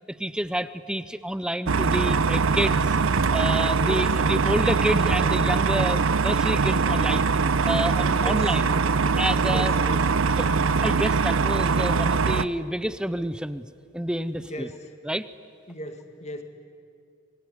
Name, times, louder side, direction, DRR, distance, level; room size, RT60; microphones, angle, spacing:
voice 1, 0.2-3.0 3.3-7.2 7.6-8.7 9.2-9.8 10.4-13.7 13.9-14.7 15.0-15.3, equal, 5° right, 14 dB, 0.6 m, -29 dB
sound 1, 1.7-12.4, right 4 dB, 80° right, 0.7 m, -22 dB
voice 2, 3.8-4.1 8.1-8.5 9.4-10.1 14.4-14.9 15.7-16.4, equal, 30° left, 7 dB, 2.0 m, -37 dB
25.5 x 21.5 x 9.9 m, 2.2 s
head